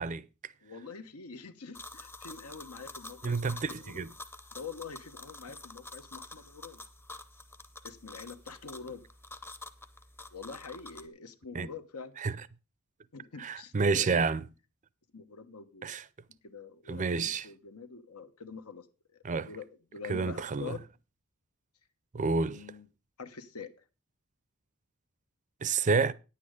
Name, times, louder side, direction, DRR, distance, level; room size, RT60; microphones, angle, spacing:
voice 1, 0.0-0.5 3.2-4.1 11.5-11.7 12.2-12.4 13.4-14.4 15.8-16.0 16.9-17.5 19.2-19.5 20.1-20.7 22.1-22.6 25.6-26.1, right 4 dB, 35° right, 0.4 m, -29 dB
voice 2, 0.6-4.0 4.5-6.8 7.8-9.0 10.3-12.1 13.1-14.3 15.1-15.9 16.3-18.9 19.1-19.2 19.5-19.7 19.9-20.8 22.2-22.9 23.2-23.7, left 5 dB, 85° left, 1.1 m, -45 dB
sound 1, 1.7-11.1, left 2 dB, 10° left, 0.6 m, -48 dB
9.9 x 8.5 x 5.0 m
head